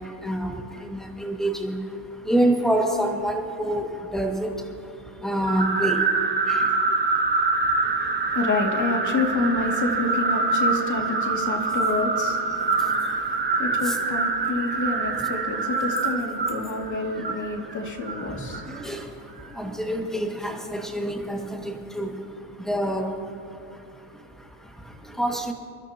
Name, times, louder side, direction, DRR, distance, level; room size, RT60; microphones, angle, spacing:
voice 1, 0.0-8.4 11.0-12.0 12.5-25.5, right 1 dB, ahead, 1 dB, 2.1 m, -30 dB
sound 1, 5.4-18.8, right 3 dB, 20° right, 1.5 m, -25 dB
voice 2, 7.8-18.8, left 2 dB, 40° left, 1 dB, 2.6 m, -28 dB
28.0 x 12.5 x 3.0 m, 2.6 s
cardioid pair, 110°, 47 cm